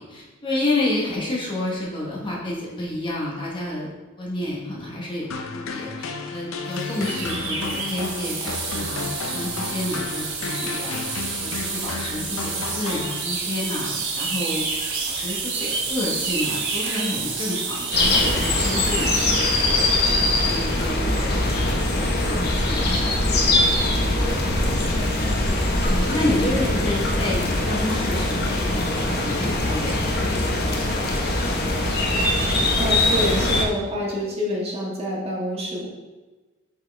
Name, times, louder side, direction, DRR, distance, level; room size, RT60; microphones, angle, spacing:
voice 1, 0.0-3.9 4.2-14.6 15.0-20.2 20.5-24.9 25.9-31.0, left 1 dB, 25° left, -4 dB, 1.2 m, -30 dB
sound 1, 5.3-13.7, left 4 dB, 70° left, 0.6 m, -33 dB
sound 2, 6.7-20.6, right 4 dB, 65° right, 1.1 m, -29 dB
sound 3, 17.9-33.7, left 2 dB, 50° left, 1.0 m, -22 dB
voice 2, 26.3-26.6 32.3-35.9, left 1 dB, 30° right, -4 dB, 1.6 m, -28 dB
8.1 x 4.3 x 3.4 m, 1.2 s
head